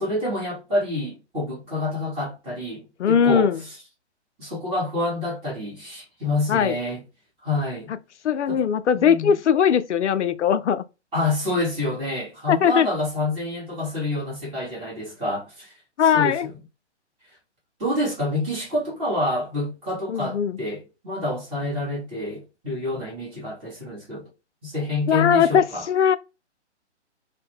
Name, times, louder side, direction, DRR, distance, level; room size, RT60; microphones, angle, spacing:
voice 1, 0.0-3.5 4.4-7.0 7.4-7.9 8.5-8.7 8.9-9.3 11.1-15.7 16.0-16.5 17.8-24.3 24.6-25.8, left 2 dB, 15° right, 1.3 m, -27 dB
voice 2, 3.0-3.6 6.5-6.8 8.2-10.8 12.5-12.9 16.0-16.5 20.1-20.6 25.1-26.2, left 8 dB, 75° left, 0.5 m, -20 dB
2.7 x 2.1 x 3.4 m
figure-of-eight pair, 135°, 35 cm